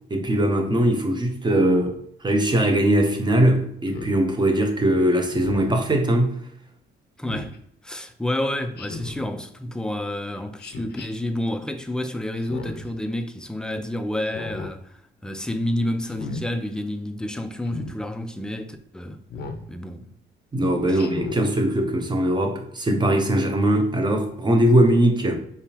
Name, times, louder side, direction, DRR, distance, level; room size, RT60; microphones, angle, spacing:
voice 1, 0.1-6.4 20.5-25.4, right 1 dB, 20° right, 0.8 m, -20 dB
Speech synthesizer, 3.9-4.2 5.3-5.8 7.2-7.6 8.8-9.3 10.6-11.1 12.4-12.9 14.2-14.7 16.0-16.4 17.6-18.0 19.3-19.6 20.9-21.4, left 3 dB, 55° left, 0.7 m, -35 dB
voice 2, 7.2-7.5 7.8-19.2 19.7-20.1 20.8-21.0, left 1 dB, 5° left, 0.4 m, -29 dB
4.7 x 3.5 x 2.9 m
cardioid pair, 90°, 20 cm